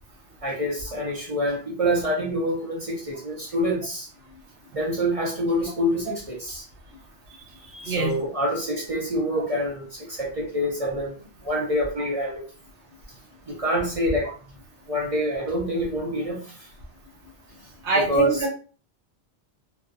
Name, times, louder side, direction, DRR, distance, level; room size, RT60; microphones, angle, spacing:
voice 1, 0.4-4.1 4.8-6.6 7.7-11.1 11.4-12.4 13.5-14.3 14.9-16.4 18.0-18.4, equal, 40° right, -3 dB, 0.5 m, -26 dB
voice 2, 17.8-18.5, right 2 dB, 80° right, -2 dB, 1.1 m, -24 dB
2.6 x 2.1 x 2.3 m, 0.38 s
omnidirectional pair, 1.2 m